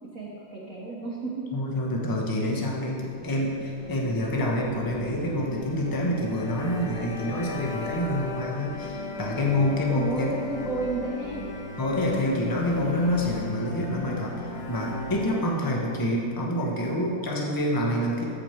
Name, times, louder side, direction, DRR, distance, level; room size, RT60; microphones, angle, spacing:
voice 1, 0.0-1.5 9.9-11.5, right 3 dB, 50° right, -5 dB, 1.3 m, -32 dB
voice 2, 1.5-10.3 11.8-18.2, equal, 20° left, -2 dB, 0.5 m, -27 dB
sound 1, 3.1-16.1, left 3 dB, 55° left, 1.4 m, -36 dB
14.0 x 4.9 x 4.5 m, 2.7 s
omnidirectional pair, 2.4 m